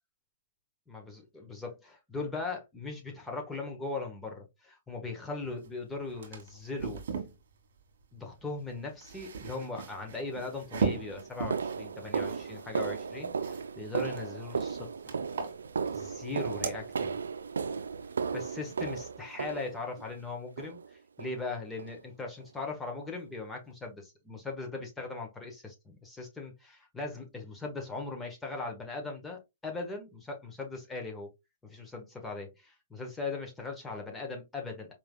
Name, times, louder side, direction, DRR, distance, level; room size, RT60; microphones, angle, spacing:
voice 1, 0.9-7.0 8.1-15.1 15.9-17.2 18.3-31.3 31.6-34.9, left 3 dB, 10° left, 1.3 m, -39 dB
sound 1, 5.6-5.7 6.0-7.4 8.7-13.6 14.0-14.7 15.1-16.0 16.3-16.8, right 5 dB, 65° right, 1.7 m, -37 dB
sound 2, 10.2-10.3 10.9-20.1 20.6-20.9 21.2-21.4 21.8-22.0 22.4-22.5 23.0-23.1, right 5 dB, 90° right, 0.4 m, -35 dB
4.8 x 3.5 x 2.3 m
hypercardioid pair, 140°, 0 cm